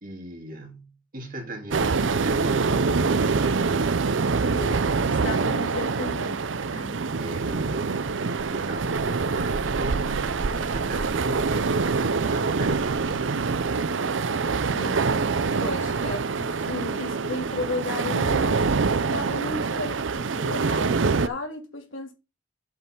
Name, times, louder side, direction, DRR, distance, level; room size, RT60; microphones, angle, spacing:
voice 1, 0.0-3.3 7.2-13.4, right 1 dB, 45° right, 2.9 m, -38 dB
sound 1, 1.7-21.3, right 4 dB, 75° right, 0.6 m, -25 dB
voice 2, 4.5-4.8 5.1-6.4 6.7-7.0 14.7-15.0 15.6-18.7 19.1-22.1, left 2 dB, 90° left, 3.0 m, -34 dB
7.8 x 5.6 x 5.9 m
head